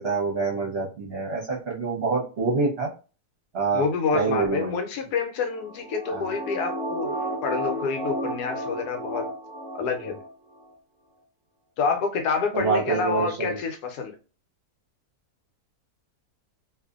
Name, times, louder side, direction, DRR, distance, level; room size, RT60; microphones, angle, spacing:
voice 1, 0.0-2.9 3.5-3.8 4.1-4.7 6.1-6.3 12.5-13.6, right 4 dB, 50° right, 0.9 m, -26 dB
voice 2, 3.7-9.3 9.7-10.2 11.8-14.2, left 5 dB, 80° left, 1.1 m, -28 dB
sound 1, 5.5-10.3 10.6-10.7, right 1 dB, 10° right, 0.4 m, -33 dB
2.6 x 2.5 x 2.3 m
omnidirectional pair, 1.7 m